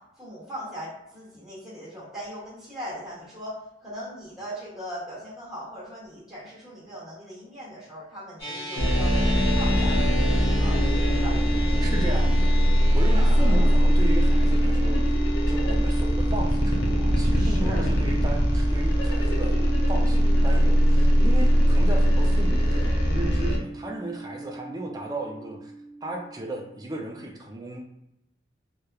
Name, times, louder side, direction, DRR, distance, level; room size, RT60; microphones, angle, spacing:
voice 1, 0.2-10.1 10.6-10.8 11.1-11.4 13.1-13.7 17.3-17.9, equal, ahead, -8 dB, 1.2 m, -39 dB
sound 1, 8.4-26.9, right 1 dB, 20° left, 1.1 m, -34 dB
sound 2, 8.8-23.6, equal, 65° left, 0.6 m, -21 dB
voice 2, 11.8-12.5 12.9-15.0 15.5-19.6 19.9-25.7 26.0-27.8, right 1 dB, 20° right, 0 dB, 0.4 m, -35 dB
3.0 x 2.1 x 2.3 m, 0.84 s
head